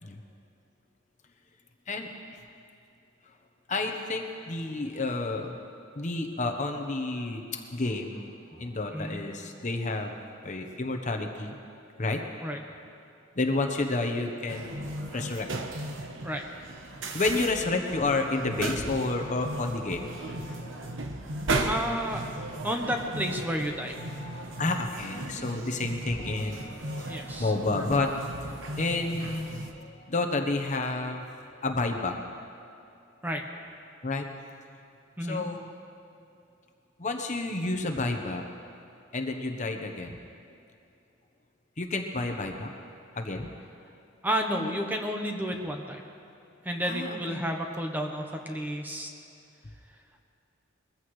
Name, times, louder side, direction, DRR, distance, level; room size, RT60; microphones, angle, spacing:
voice 1, 1.9-2.4 3.2-3.3 3.7-10.1 10.4-11.6 12.0-12.5 13.3-15.9 16.9-21.0 24.0-28.2 28.6-31.2 31.6-32.1 34.0-34.3 35.3-35.7 37.0-38.5 39.1-40.2 41.8-42.7 43.1-43.5 46.8-47.5, left 2 dB, 40° left, 4 dB, 1.0 m, -31 dB
voice 2, 8.9-9.2 12.4-12.6 16.2-16.4 21.6-24.0 27.0-27.5 33.2-33.4 35.2-35.4 44.2-46.0 46.6-49.1, equal, 10° right, 3 dB, 1.0 m, -31 dB
sound 1, 14.5-29.7, right 2 dB, 75° right, 1.1 m, -36 dB
21.5 x 15.0 x 3.2 m, 2.6 s
head